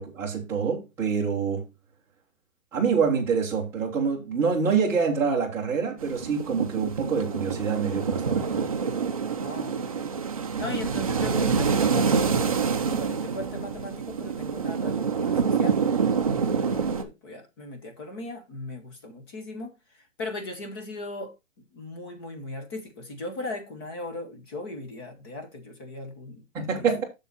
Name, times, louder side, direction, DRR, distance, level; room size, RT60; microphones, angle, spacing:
voice 1, 0.0-1.7 2.7-8.7 26.5-27.0, right 6 dB, 5° right, 1.2 m, -26 dB
sound 1, 6.0-17.0, right 6 dB, 30° right, 0.6 m, -26 dB
voice 2, 9.4-10.1 10.6-15.8 16.3-19.8 20.2-27.0, left 2 dB, 20° left, 1.1 m, -38 dB
7.1 x 6.7 x 4.2 m
hypercardioid pair, 175°, 40 cm